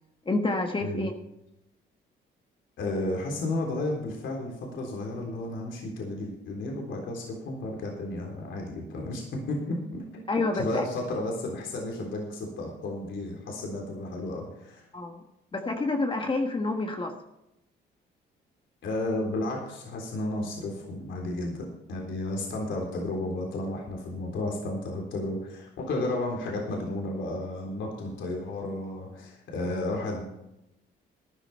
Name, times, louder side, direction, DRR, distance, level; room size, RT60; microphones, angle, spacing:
voice 1, 0.2-1.1 10.3-10.8 14.9-15.2 15.5-17.2, left 2 dB, 25° left, 4 dB, 1.4 m, -28 dB
voice 2, 2.8-10.3 10.5-14.8 18.8-30.2, left 2 dB, 75° left, -1 dB, 3.7 m, -33 dB
13.5 x 11.0 x 4.3 m, 0.88 s
cardioid pair, 90°, 20 cm